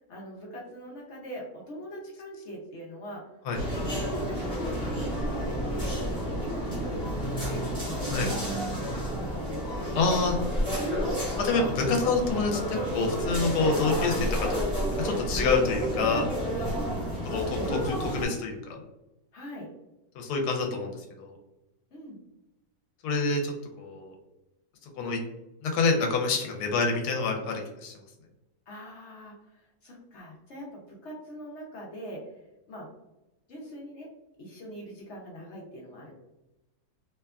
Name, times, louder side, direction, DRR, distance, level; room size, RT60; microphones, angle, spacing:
voice 1, 0.0-3.4 3.8-6.0 6.4-10.4 16.7-17.1 19.3-19.7 21.9-22.2 28.7-32.9 33.5-34.1 34.4-36.1, equal, 60° left, -2 dB, 0.8 m, -42 dB
sound 1, 3.5-18.3, equal, 5° left, 0.9 m, -30 dB
voice 2, 10.0-10.3 11.4-14.6 15.0-16.3 17.2-18.6 20.1-21.3 23.0-24.2 25.0-25.2 25.6-28.0, left 4 dB, 85° left, 2 dB, 1.1 m, -27 dB
2.8 x 2.2 x 2.3 m, 0.97 s
omnidirectional pair, 1.6 m